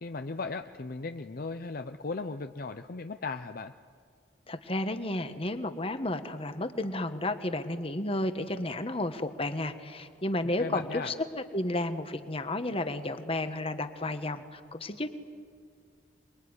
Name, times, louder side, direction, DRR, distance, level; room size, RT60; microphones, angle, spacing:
voice 1, 0.0-3.7 10.6-11.1, left 3 dB, 50° left, 8 dB, 0.7 m, -37 dB
voice 2, 4.5-15.1, left 1 dB, 30° left, 9 dB, 1.4 m, -32 dB
27.5 x 22.0 x 9.8 m, 2.1 s
head